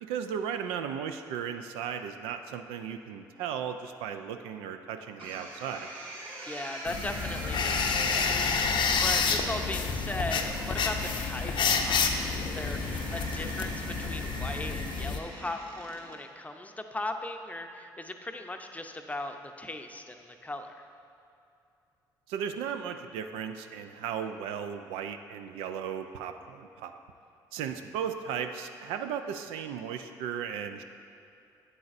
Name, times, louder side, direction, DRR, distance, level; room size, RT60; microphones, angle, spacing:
voice 1, 0.0-5.9 22.3-26.9 27.5-30.8, right 8 dB, 80° right, 7 dB, 0.3 m, -36 dB
sound 1, 5.2-16.2, right 1 dB, 65° right, 1.3 m, -42 dB
voice 2, 6.5-20.9, left 2 dB, 15° left, 5 dB, 0.6 m, -38 dB
sound 2, 6.9-15.2, left 5 dB, 55° left, 0.6 m, -29 dB
8.7 x 7.8 x 2.6 m, 2.6 s
hypercardioid pair, 50°, 10 cm